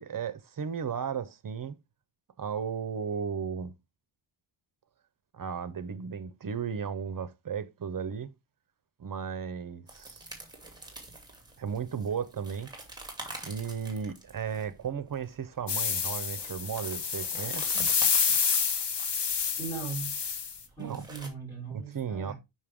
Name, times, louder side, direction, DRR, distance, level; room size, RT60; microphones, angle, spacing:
voice 1, 0.0-1.8 2.4-3.7 5.3-8.3 9.0-10.3 11.6-12.7 13.4-17.9 20.8-21.0 21.7-22.3, right 7 dB, 40° right, 0.7 m, -35 dB
sound 1, 9.9-21.3, right 2 dB, 10° right, 2.5 m, -46 dB
sound 2, 15.7-20.6, left 6 dB, 55° left, 1.3 m, -28 dB
voice 2, 19.6-20.1 20.8-22.3, right 5 dB, 5° left, 5.3 m, -38 dB
6.5 x 5.8 x 3.5 m
wide cardioid pair, 105°, 50 cm